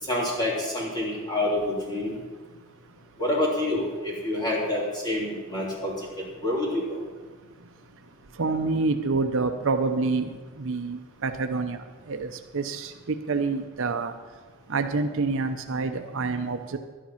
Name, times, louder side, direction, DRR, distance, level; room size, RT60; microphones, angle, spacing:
voice 1, 0.0-2.2 3.2-7.0, left 1 dB, 20° left, -5 dB, 3.5 m, -27 dB
voice 2, 8.4-11.8 12.1-12.9 13.3-14.1 14.7-16.8, right 3 dB, 60° right, 7 dB, 0.7 m, -27 dB
11.5 x 10.0 x 5.7 m, 1.4 s
head